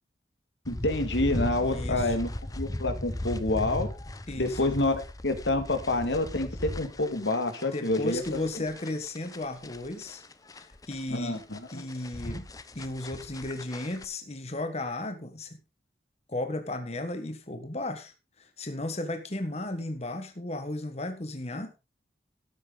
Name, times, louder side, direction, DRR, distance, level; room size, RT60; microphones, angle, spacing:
sound 1, 0.6-14.0, left 1 dB, 20° left, 0.8 m, -37 dB
voice 1, 0.7-3.9 4.4-8.2 11.1-11.8, left 2 dB, 80° left, 8 dB, 2.2 m, -28 dB
voice 2, 1.6-2.1 4.3-4.6 7.7-10.2 10.5-11.4 11.7-12.5 12.7-15.6 16.3-21.7, left 2 dB, 35° left, 7 dB, 1.4 m, -35 dB
13.0 x 9.6 x 3.9 m, 0.28 s
head